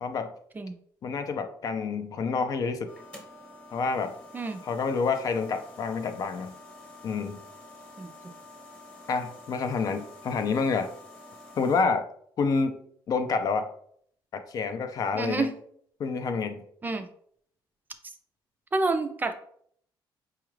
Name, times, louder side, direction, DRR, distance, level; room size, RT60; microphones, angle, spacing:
voice 1, 0.0-0.3 1.0-2.9 3.7-4.2 4.6-6.5 7.0-7.4 9.1-10.9 11.6-12.1 12.4-12.8 13.1-13.7 14.3-15.5 16.0-16.6, left 4 dB, 50° left, 9 dB, 0.4 m, -28 dB
sound 1, 2.9-11.8, left 2 dB, 10° left, 0.9 m, -48 dB
voice 2, 15.1-15.5 16.8-17.1 18.7-19.3, right 3 dB, 20° right, 8 dB, 0.3 m, -28 dB
4.6 x 2.4 x 3.1 m, 0.64 s
cardioid pair, 120°, 8 cm